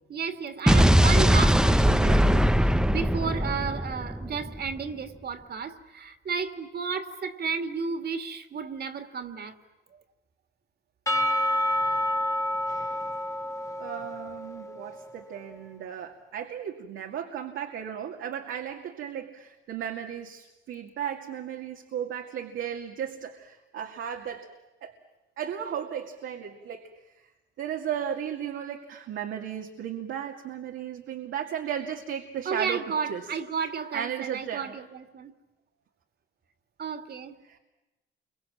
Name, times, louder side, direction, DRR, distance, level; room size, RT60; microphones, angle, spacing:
voice 1, 0.1-9.6 32.5-35.3 36.8-37.3, right 5 dB, 55° right, 8 dB, 2.5 m, -33 dB
Explosion, 0.7-4.7, equal, 5° right, 0.8 m, -21 dB
Percussion / Church bell, 11.1-14.9, left 1 dB, 15° left, 1.7 m, -28 dB
voice 2, 13.8-24.5 24.8-24.9 25.4-26.9 27.2-27.3 27.6-32.8 33.1-33.3 33.9-34.8 37.4-37.6, right 9 dB, 80° right, 2 dB, 2.3 m, -35 dB
29.5 x 24.5 x 7.4 m, 1.0 s
cardioid pair, 90°, 20 cm